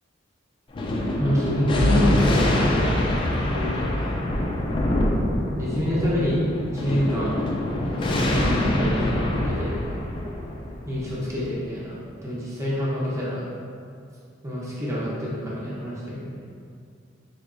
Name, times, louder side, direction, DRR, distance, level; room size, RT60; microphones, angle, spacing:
Thunder, 0.7-11.6, left 1 dB, 25° left, 0.3 m, -24 dB
voice 1, 1.2-4.1 5.6-6.4 6.7-7.3 7.9-9.7 10.8-11.9 12.2-13.4 14.4-16.4, left 1 dB, 15° right, -7 dB, 0.6 m, -27 dB
4.0 x 2.8 x 2.5 m, 2.3 s
head